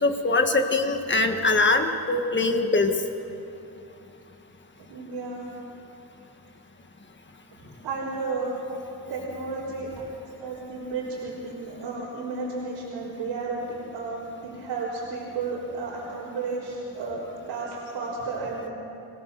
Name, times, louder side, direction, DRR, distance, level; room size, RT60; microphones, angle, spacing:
voice 1, 0.0-2.9, left 3 dB, 30° left, 5 dB, 1.7 m, -22 dB
voice 2, 4.9-5.5 7.6-8.5 9.1-9.9 10.4-17.2 17.5-18.7, right 3 dB, 90° right, -8 dB, 4.3 m, -33 dB
25.5 x 17.0 x 6.9 m, 2.8 s
cardioid pair, 95°, 40 cm